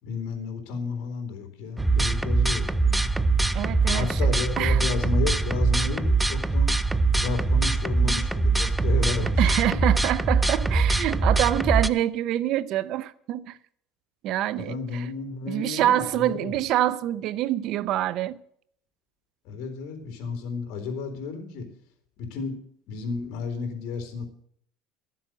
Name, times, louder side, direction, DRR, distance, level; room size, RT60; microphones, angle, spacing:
voice 1, 0.0-3.1 3.9-6.9 7.2-9.8 14.6-16.6 19.4-21.7 22.2-22.6 22.9-24.3, left 5 dB, 60° left, 3.9 m, -32 dB
sound 1, 1.8-11.9, right 3 dB, 5° right, 0.5 m, -23 dB
voice 2, 3.5-4.2 4.6-4.8 8.0-8.2 9.4-13.6 14.2-14.8 15.5-18.4, right 13 dB, 55° right, 0.6 m, -26 dB
13.5 x 7.7 x 7.8 m
supercardioid pair, 125°, 0 cm